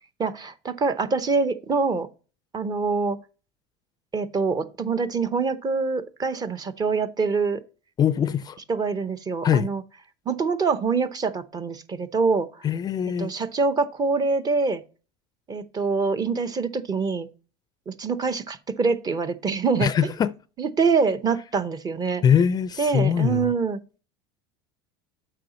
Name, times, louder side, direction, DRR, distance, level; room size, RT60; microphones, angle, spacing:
voice 1, 0.2-2.1 2.5-3.2 4.1-7.6 8.7-9.8 10.3-12.6 13.2-14.8 15.5-17.3 17.9-19.9 20.6-22.2 22.8-24.0, right 4 dB, 30° right, 0.8 m, -25 dB
voice 2, 8.0-8.6 9.4-9.7 12.6-13.3 19.8-20.3 22.2-23.5, left 8 dB, 30° left, 0.4 m, -22 dB
7.6 x 5.0 x 4.2 m
supercardioid pair, 105°, 14 cm